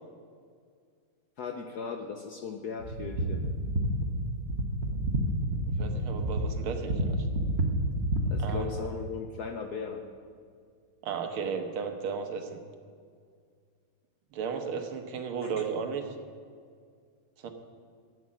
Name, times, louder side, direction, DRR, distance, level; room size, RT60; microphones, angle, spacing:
voice 1, 1.4-3.5 8.3-10.0 15.4-15.5, left 5 dB, 65° left, 4 dB, 1.0 m, -37 dB
sound 1, 2.8-8.5, right 1 dB, 40° right, 1.1 m, -29 dB
voice 2, 5.8-7.3 8.4-8.8 11.0-12.6 14.3-16.1 17.4-17.5, right 6 dB, 75° right, 6 dB, 1.9 m, -34 dB
11.0 x 8.6 x 7.5 m, 2.1 s
omnidirectional pair, 2.4 m